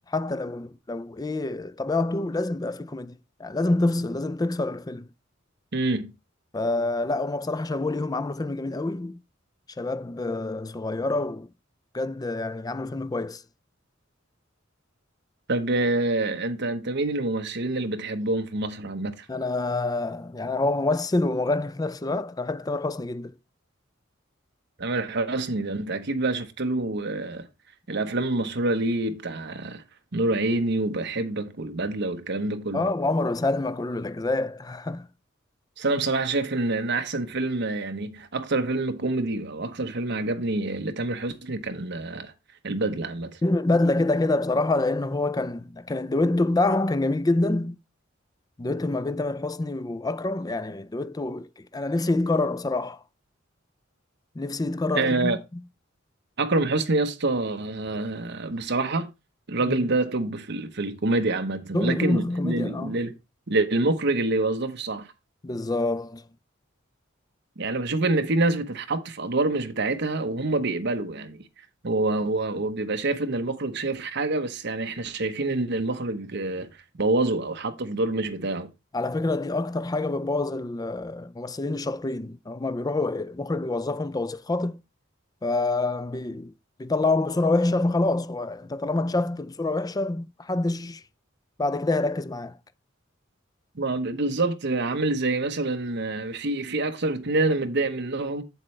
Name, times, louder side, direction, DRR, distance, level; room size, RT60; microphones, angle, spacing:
voice 1, 0.0-5.1 6.5-9.2 9.8-11.5 11.9-13.4 19.3-23.3 32.7-35.1 43.4-47.8 48.6-53.0 54.4-55.3 59.6-59.8 61.7-63.0 65.4-66.2 78.9-84.8 85.4-86.5 86.8-91.0 91.6-92.6, left 2 dB, 20° left, 0.4 m, -26 dB
voice 2, 5.7-6.1 15.5-19.3 24.8-27.5 27.9-29.8 30.1-32.9 35.8-42.3 42.6-43.4 54.9-55.4 56.4-59.1 59.5-63.1 63.5-65.1 67.6-71.5 71.8-76.7 77.0-78.7 93.7-98.4, right 2 dB, 60° right, 1.1 m, -26 dB
7.7 x 7.6 x 3.3 m
head